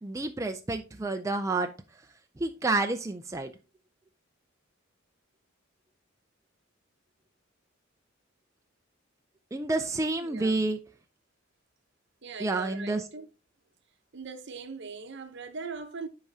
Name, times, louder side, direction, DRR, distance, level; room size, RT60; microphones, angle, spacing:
voice 1, 0.0-1.7 2.4-3.5 9.5-10.8 12.4-13.0, right 2 dB, 15° right, 0.4 m, -29 dB
voice 2, 10.2-10.7 12.2-13.3 14.1-16.1, right 4 dB, 60° right, 0.8 m, -40 dB
10.5 x 4.8 x 2.7 m
head